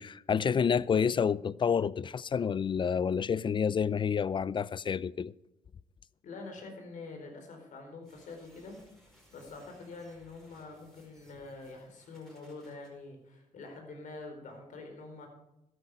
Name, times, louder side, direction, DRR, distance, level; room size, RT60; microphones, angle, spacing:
voice 1, 0.0-5.3, left 7 dB, 35° left, 0.4 m, -29 dB
voice 2, 6.2-8.7 9.3-15.3, left 3 dB, 65° left, 4.2 m, -46 dB
sound 1, 8.0-12.9, equal, 5° left, 4.7 m, -62 dB
12.5 x 10.5 x 4.8 m
cardioid pair, 90°, 14 cm